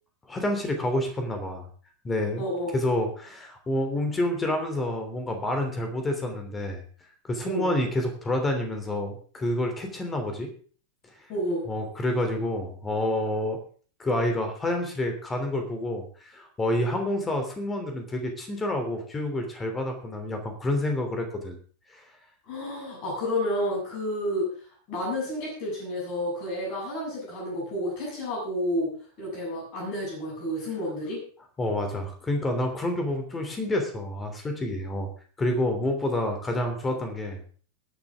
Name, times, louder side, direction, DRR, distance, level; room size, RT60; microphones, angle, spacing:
voice 1, 0.3-1.7 2.0-2.4 2.7-6.8 7.2-10.5 11.7-13.6 14.0-21.5 21.9-22.0 31.6-35.1 35.4-37.4, left 1 dB, 15° left, 5 dB, 3.1 m, -28 dB
voice 2, 2.4-2.7 7.4-7.7 11.3-11.7 22.5-24.5 24.9-28.9 29.2-31.2, equal, 40° left, -4 dB, 7.8 m, -30 dB
21.5 x 8.8 x 3.7 m, 0.43 s
figure-of-eight pair, 90°, 0 cm